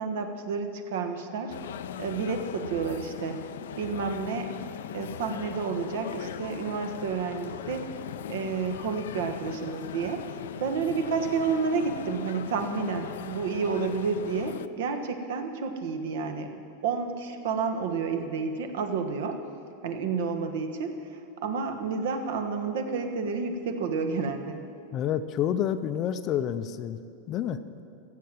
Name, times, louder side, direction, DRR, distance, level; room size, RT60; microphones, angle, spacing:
voice 1, 0.0-1.6 2.0-3.4 3.8-4.6 4.9-7.9 8.3-16.5 16.8-19.4 19.8-24.6, right 5 dB, 70° right, 6 dB, 1.3 m, -30 dB
sound 1, 1.5-14.7, left 10 dB, 90° left, 0.5 m, -39 dB
voice 2, 24.9-27.0 27.3-27.6, left 10 dB, 30° left, 12 dB, 0.5 m, -28 dB
15.5 x 7.7 x 7.6 m, 2.6 s
supercardioid pair, 165°, 0 cm